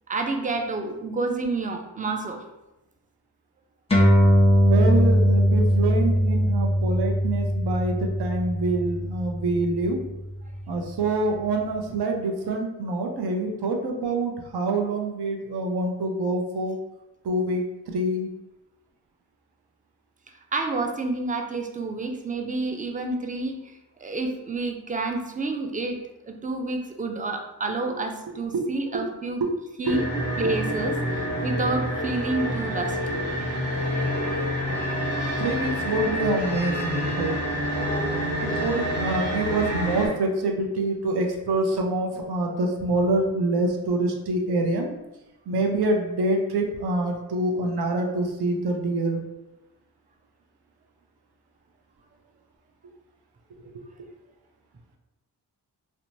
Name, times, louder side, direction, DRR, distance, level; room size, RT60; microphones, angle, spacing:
voice 1, 0.1-2.4 20.5-26.0 26.2-29.4 29.8-30.1 30.4-33.2, right 3 dB, 20° right, 4 dB, 0.4 m, -29 dB
sound 1, 3.9-10.7, equal, 15° left, 0.9 m, -21 dB
voice 2, 4.6-10.0 10.7-16.8 17.2-17.6 17.9-18.3 28.5-28.6 29.4-29.5 29.9-30.0 33.1-33.2 35.4-37.4 38.4-44.9 45.5-49.2, right 2 dB, 65° right, 2 dB, 0.6 m, -26 dB
sound 2, 29.8-40.1, equal, 50° right, 1.0 m, -27 dB
2.8 x 2.1 x 2.6 m, 0.98 s
cardioid pair, 40°, 42 cm